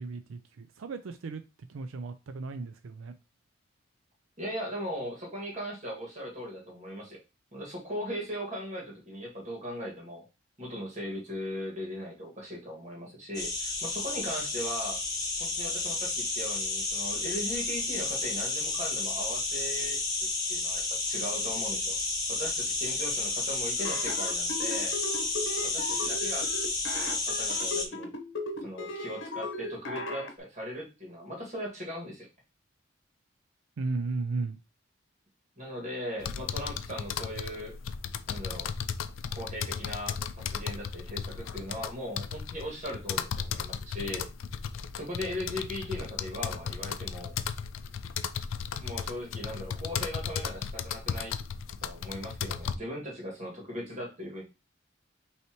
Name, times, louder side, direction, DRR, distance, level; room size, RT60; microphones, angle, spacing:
voice 1, 0.0-1.4 1.7-3.1 33.8-34.6, right 3 dB, 85° right, 0.4 m, -35 dB
voice 2, 4.4-7.2 7.5-10.2 10.6-15.0 15.4-20.0 20.5-21.9 22.3-25.0 25.6-26.5 26.9-28.1 28.6-32.3 35.6-37.7 38.3-38.7 39.4-44.3 44.9-47.4 48.8-51.4 51.8-54.4, equal, 35° right, 2.0 m, -38 dB
sound 1, 13.3-27.9, left 3 dB, 20° left, 1.0 m, -31 dB
sound 2, 23.8-30.3, left 2 dB, 65° left, 1.0 m, -37 dB
sound 3, 36.2-52.7, left 7 dB, 85° left, 0.4 m, -35 dB
5.5 x 3.2 x 3.0 m
head